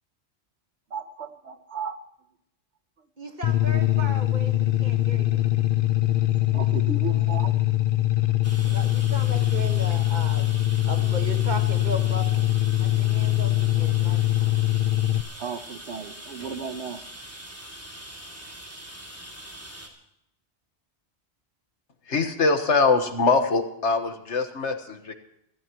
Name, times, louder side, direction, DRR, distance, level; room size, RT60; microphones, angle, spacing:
voice 1, 0.9-2.0 6.1-7.6 15.4-17.0, right 5 dB, 75° right, 10 dB, 1.3 m, -35 dB
voice 2, 3.2-5.4 8.6-10.5 10.8-12.5 12.8-14.6, right 1 dB, 40° right, 4 dB, 1.8 m, -36 dB
sound 1, 3.4-15.2, left 15 dB, 55° left, 0.7 m, -23 dB
sound 2, 8.4-19.9, right 1 dB, 10° right, 2.6 m, -43 dB
voice 3, 22.1-25.1, left 4 dB, 80° left, 7 dB, 1.7 m, -23 dB
25.5 x 14.0 x 3.0 m, 0.77 s
omnidirectional pair, 1.2 m